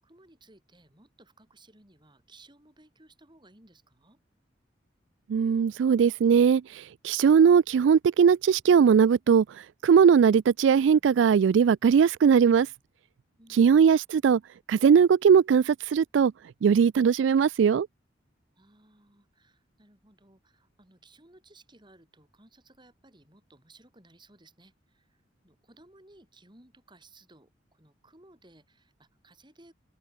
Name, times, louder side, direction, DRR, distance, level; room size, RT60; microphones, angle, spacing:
voice 1, 0.0-4.2 13.4-13.9 18.5-29.7, right 2 dB, 25° right, 6.6 m, -58 dB
voice 2, 5.3-12.7 13.5-14.4 14.7-16.3 16.6-17.9, right 7 dB, 80° right, 0.3 m, -20 dB
open air
head